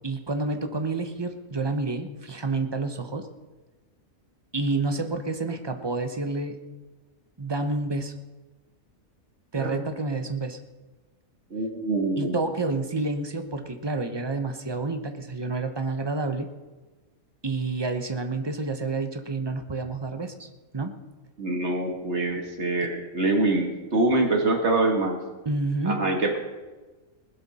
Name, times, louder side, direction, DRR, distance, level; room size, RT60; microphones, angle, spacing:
voice 1, 0.0-3.3 4.5-6.6 7.4-8.1 9.5-10.6 12.2-16.5 17.4-20.5 20.7-21.0 25.4-26.0, right 3 dB, 20° right, 7 dB, 0.9 m, -29 dB
voice 2, 11.5-12.4 21.4-25.2 25.9-26.4, right 2 dB, 55° right, 3 dB, 2.0 m, -25 dB
19.5 x 12.0 x 4.2 m, 1.2 s
omnidirectional pair, 1.5 m